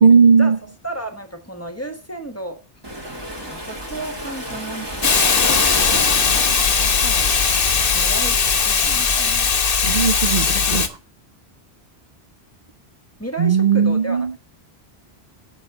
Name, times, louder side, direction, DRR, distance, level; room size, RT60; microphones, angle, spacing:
voice 1, 0.0-0.6 9.8-10.9 13.4-14.3, right 6 dB, 50° right, 9 dB, 0.7 m, -16 dB
voice 2, 0.8-2.6 3.0-7.4 7.9-9.5 13.2-14.4, right 1 dB, 15° left, 7 dB, 1.2 m, -34 dB
Waves surf, 2.8-8.0, right 1 dB, 25° right, 1.9 m, -30 dB
sound 1, 4.9-10.0, left 1 dB, 80° right, 3.4 m, -37 dB
Hiss, 5.0-10.9, left 6 dB, 60° left, 1.1 m, -18 dB
8.1 x 5.7 x 6.5 m, 0.34 s
omnidirectional pair, 1.1 m